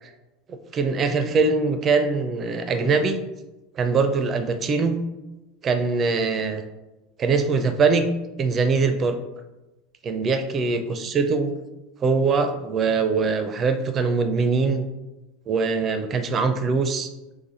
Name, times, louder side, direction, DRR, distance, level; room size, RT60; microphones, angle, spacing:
voice 1, 0.5-3.2 3.8-5.0 5.6-6.6 7.2-8.1 8.4-9.2 10.0-11.5 12.0-14.9 15.5-17.1, right 4 dB, 30° right, 9 dB, 0.5 m, -22 dB
3.5 x 3.3 x 4.1 m, 1.0 s
figure-of-eight pair, 75°, 0 cm